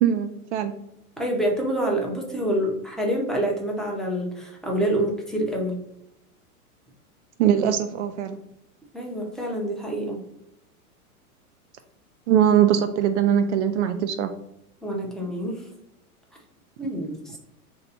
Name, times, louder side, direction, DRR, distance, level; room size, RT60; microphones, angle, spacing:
voice 1, 0.0-0.8 7.4-8.4 12.3-14.3, right 9 dB, 50° right, 8 dB, 0.4 m, -21 dB
voice 2, 1.2-5.8 8.9-10.2 14.8-15.6 16.8-17.4, right 1 dB, ahead, -2 dB, 0.7 m, -27 dB
3.2 x 2.8 x 4.1 m, 0.80 s
hypercardioid pair, 110°, 46 cm